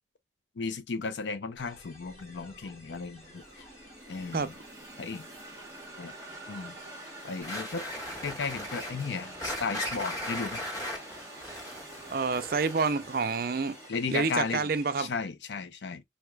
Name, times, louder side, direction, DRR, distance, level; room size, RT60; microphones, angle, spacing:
voice 1, 0.6-3.6 4.1-4.5 5.0-5.3 6.0-6.1 6.5-6.8 7.2-7.9 8.2-10.6 13.9-14.7 15.0-16.0, left 4 dB, 85° left, 0.5 m, -35 dB
sound 1, 1.6-15.1, left 1 dB, 35° left, 1.4 m, -53 dB
sound 2, 3.2-13.9, right 2 dB, 15° right, 1.0 m, -47 dB
sound 3, 7.4-13.1, left 1 dB, 20° left, 1.7 m, -38 dB
voice 2, 12.1-13.8 14.1-15.1, right 4 dB, 55° right, 0.5 m, -28 dB
4.7 x 2.8 x 2.2 m
head